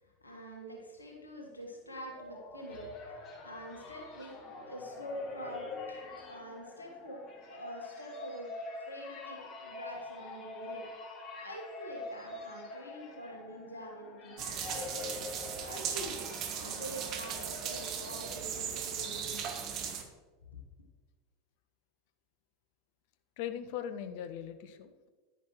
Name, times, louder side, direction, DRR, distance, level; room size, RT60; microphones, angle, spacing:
voice 1, 0.0-8.5 8.8-10.9 11.3-14.7 15.5-16.3 16.6-19.7, equal, 85° left, 1 dB, 1.4 m, -46 dB
sound 1, 1.8-18.8, left 3 dB, 40° left, 1.6 m, -46 dB
sound 2, 14.4-20.0, right 8 dB, 40° right, 1.3 m, -38 dB
voice 2, 23.4-25.1, left 9 dB, 55° left, 10 dB, 0.7 m, -40 dB
10.5 x 10.0 x 3.1 m, 1.4 s
figure-of-eight pair, 80°, 0 cm